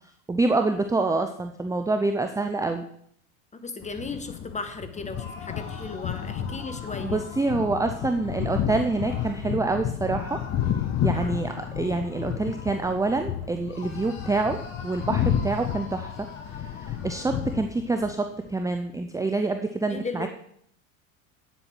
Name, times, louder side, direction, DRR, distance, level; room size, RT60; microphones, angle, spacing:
voice 1, 0.3-2.9 7.0-10.4 11.0-14.6 14.8-16.1 16.9-20.3, right 3 dB, 10° right, 6 dB, 0.7 m, -26 dB
voice 2, 3.5-7.2 11.1-11.4 19.9-20.3, left 3 dB, 15° left, 9 dB, 1.5 m, -36 dB
sound 1, 3.8-18.1, left 9 dB, 40° left, 1.1 m, -31 dB
sound 2, 5.0-9.4 10.1-13.3 13.6-17.6, left 4 dB, 80° left, 4.3 m, -45 dB
9.1 x 8.2 x 6.3 m, 0.68 s
hypercardioid pair, 90°, 41 cm